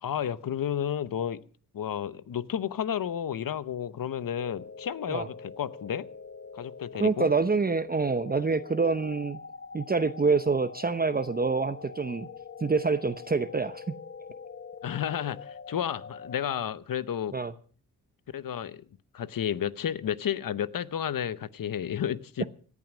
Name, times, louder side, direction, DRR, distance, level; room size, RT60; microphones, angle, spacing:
voice 1, 0.0-1.4 1.7-6.1 6.5-7.3 14.8-17.4 18.3-18.8 19.1-22.4, left 9 dB, 70° left, 16 dB, 0.9 m, -32 dB
sound 1, 4.4-16.6, left 5 dB, 40° left, 1.0 m, -44 dB
voice 2, 7.0-9.4 9.7-12.3 12.6-14.0 17.3-17.5, right 4 dB, 25° right, 11 dB, 0.8 m, -26 dB
18.0 x 11.0 x 6.1 m, 0.43 s
cardioid pair, 70°, 34 cm